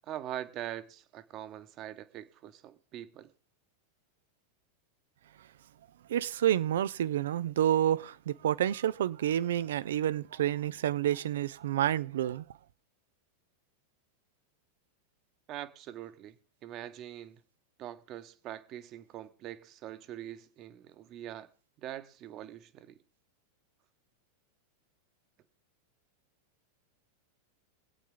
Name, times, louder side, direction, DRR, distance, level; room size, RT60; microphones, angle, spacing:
voice 1, 0.1-3.3 15.5-17.4 17.8-21.5 21.8-23.0, right 12 dB, 45° right, 1.2 m, -43 dB
voice 2, 6.1-12.4, right 11 dB, 75° right, 0.5 m, -29 dB
24.5 x 8.5 x 3.8 m
hypercardioid pair, 95°, 0 cm